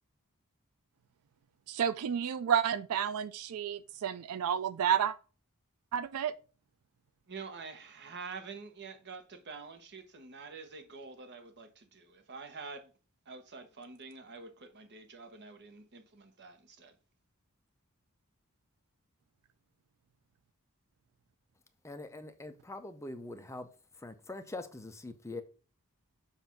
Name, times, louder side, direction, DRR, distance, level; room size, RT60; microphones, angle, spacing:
voice 1, 1.7-5.1 5.9-6.3, right 8 dB, 70° right, 0.4 m, -30 dB
voice 2, 7.3-12.9 13.2-17.0, right 4 dB, 50° right, 1.0 m, -47 dB
voice 3, 21.8-23.7 23.9-25.4, left 2 dB, 15° left, 0.6 m, -43 dB
7.3 x 2.6 x 5.8 m
head